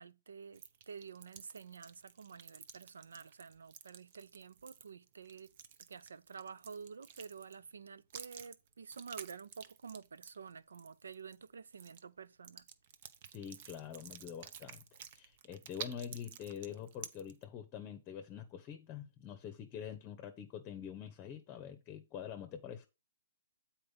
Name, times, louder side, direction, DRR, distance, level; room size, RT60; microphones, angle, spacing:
voice 1, 0.0-5.5 5.8-12.7, right 6 dB, 80° right, 0.6 m, -50 dB
sound 1, 0.5-7.7 8.1-11.5 11.7-12.0 12.4-17.4, right 8 dB, 45° right, 0.8 m, -51 dB
voice 2, 13.3-22.9, left 8 dB, 25° left, 0.9 m, -46 dB
7.8 x 4.4 x 5.2 m
hypercardioid pair, 140°, 0 cm